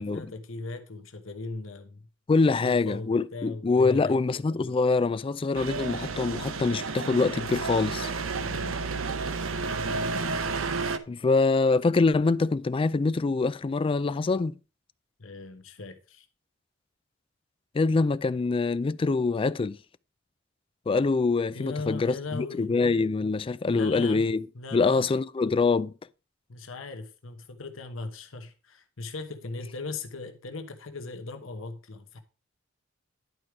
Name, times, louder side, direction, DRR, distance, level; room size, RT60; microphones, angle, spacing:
voice 1, 0.0-2.0 2.6-4.2 8.4-8.8 15.2-16.3 21.5-22.7 23.7-25.0 26.5-32.2, left 3 dB, 85° left, 1.1 m, -38 dB
voice 2, 2.3-8.1 11.1-14.6 17.7-19.8 20.9-24.4 24.7-25.9, left 3 dB, 25° left, 0.3 m, -24 dB
sound 1, 5.5-11.0, right 4 dB, 85° right, 0.8 m, -31 dB
11.0 x 4.8 x 4.8 m
head